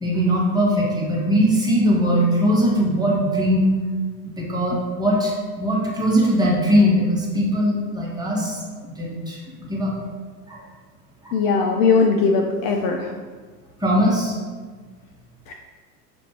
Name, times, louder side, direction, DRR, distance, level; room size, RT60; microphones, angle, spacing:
voice 1, 0.0-3.7 4.2-9.9 10.5-10.6 11.2-11.3 13.8-14.4, equal, 10° right, -4 dB, 1.1 m, -20 dB
voice 2, 11.3-13.1 15.5-15.6, left 4 dB, 45° left, 2 dB, 0.5 m, -19 dB
6.2 x 2.5 x 2.9 m, 1.5 s
hypercardioid pair, 80°, 49 cm